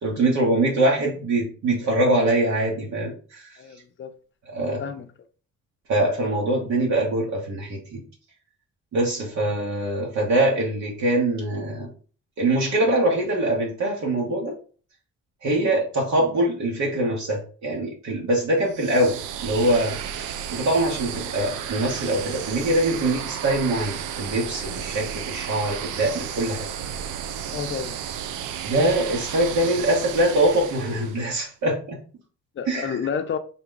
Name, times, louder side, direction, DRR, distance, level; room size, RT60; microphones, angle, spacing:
voice 1, 0.0-3.5 4.5-4.8 5.9-8.0 8.9-11.9 12.4-14.5 15.4-19.1 19.4-26.7 28.6-32.0 32.7-33.0, right 1 dB, 65° right, 1.2 m, -23 dB
voice 2, 3.6-4.1 4.8-5.1 27.5-28.0 32.6-33.4, left 7 dB, 40° left, 0.5 m, -30 dB
sound 1, 18.7-31.4, right 9 dB, 85° right, 0.5 m, -33 dB
3.9 x 2.3 x 3.8 m
cardioid pair, 90°, 30 cm